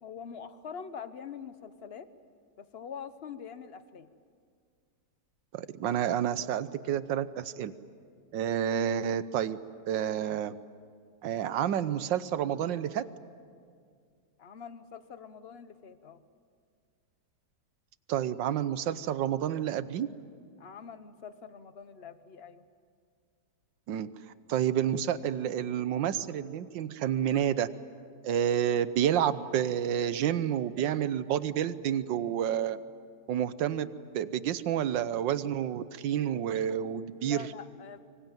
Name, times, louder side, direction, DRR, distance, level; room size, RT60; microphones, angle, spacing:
voice 1, 0.0-2.1 2.6-4.1 14.4-16.2 20.6-22.6 37.2-38.0, left 7 dB, 40° left, 12 dB, 1.1 m, -44 dB
voice 2, 5.5-7.7 8.3-9.6 9.9-10.6 11.2-13.0 18.1-20.1 23.9-24.1 24.5-27.7 28.2-32.8 33.3-33.9 34.1-37.5, right 10 dB, 85° right, 14 dB, 1.6 m, -29 dB
25.0 x 24.5 x 9.2 m, 2.1 s
omnidirectional pair, 1.9 m